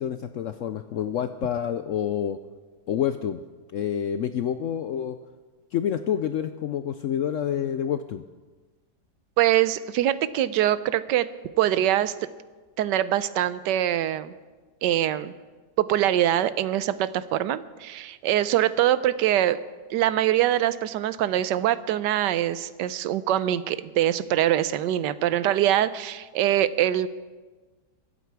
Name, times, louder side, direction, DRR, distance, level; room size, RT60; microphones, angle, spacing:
voice 1, 0.0-2.4 2.9-3.4 3.7-5.2 5.7-8.2, left 9 dB, 75° left, 10 dB, 0.7 m, -28 dB
voice 2, 9.4-11.3 11.6-12.1 12.8-14.3 14.8-15.3 15.8-19.6 19.9-27.1, right 12 dB, 90° right, 15 dB, 1.3 m, -23 dB
23.0 x 8.4 x 4.6 m, 1.3 s
omnidirectional pair, 1.8 m